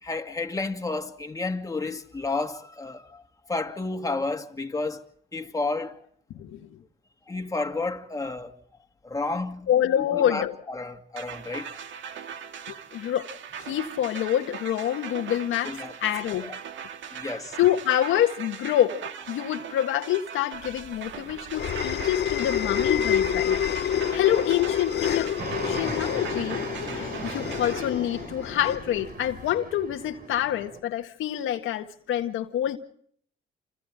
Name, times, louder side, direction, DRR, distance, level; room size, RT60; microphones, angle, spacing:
voice 1, 0.0-3.2 3.5-5.1 5.3-6.0 7.3-8.6 9.0-9.7 10.0-11.8 15.6-15.9 16.4-16.6 17.1-17.6, left 3 dB, 15° left, 2.3 m, -31 dB
voice 2, 6.3-6.7 9.7-10.5 12.7-13.3 13.6-16.5 17.6-19.0 19.3-25.4 25.6-32.8, left 11 dB, 85° left, 1.8 m, -27 dB
sound 1, 11.2-27.9, right 8 dB, 70° right, 1.9 m, -40 dB
sound 2, 20.7-29.5, left 9 dB, 60° left, 0.9 m, -28 dB
Fixed-wing aircraft airplane, 25.4-30.8, right 3 dB, 45° right, 5.4 m, -38 dB
30.0 x 27.5 x 3.7 m
cardioid pair, 90°, 20 cm